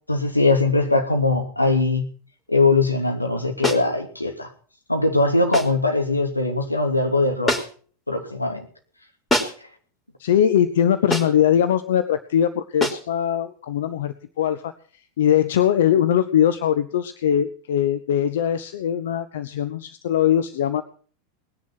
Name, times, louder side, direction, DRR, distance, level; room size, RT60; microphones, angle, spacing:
voice 1, 0.1-2.1 2.5-4.5 4.9-7.6 8.1-8.7, left 3 dB, 90° left, 3 dB, 2.8 m, -21 dB
sound 1, 3.6-3.9 5.5-5.8 7.5-7.9 9.3-9.7 11.1-11.5 12.8-13.1, left 1 dB, 15° left, 3.4 m, -25 dB
voice 2, 10.2-14.7 15.2-20.8, left 9 dB, 60° left, 12 dB, 0.9 m, -21 dB
19.5 x 10.5 x 6.0 m, 0.44 s
figure-of-eight pair, 85°, 0 cm